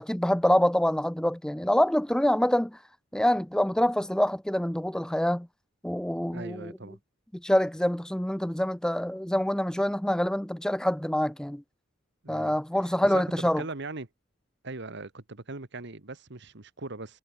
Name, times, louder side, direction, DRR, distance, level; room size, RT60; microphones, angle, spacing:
voice 1, 0.0-2.8 3.1-5.5 5.8-6.7 7.4-11.6 12.3-13.6, left 1 dB, 5° left, 0.5 m, -26 dB
voice 2, 6.3-7.0 12.2-12.5 12.8-14.1 14.6-17.2, right 3 dB, 60° right, 1.7 m, -40 dB
head